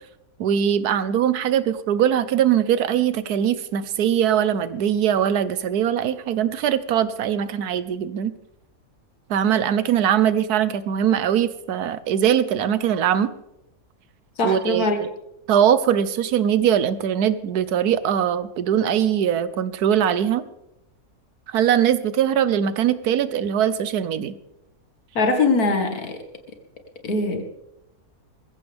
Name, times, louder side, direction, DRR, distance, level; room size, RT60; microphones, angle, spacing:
voice 1, 0.4-8.3 9.3-13.3 14.4-15.1 15.5-20.4 21.5-24.3, right 9 dB, 80° right, 14 dB, 1.3 m, -21 dB
voice 2, 14.4-15.1 25.2-26.2 27.0-27.4, left 3 dB, 70° left, 6 dB, 2.2 m, -22 dB
21.0 x 15.0 x 3.5 m, 0.86 s
omnidirectional pair, 1.6 m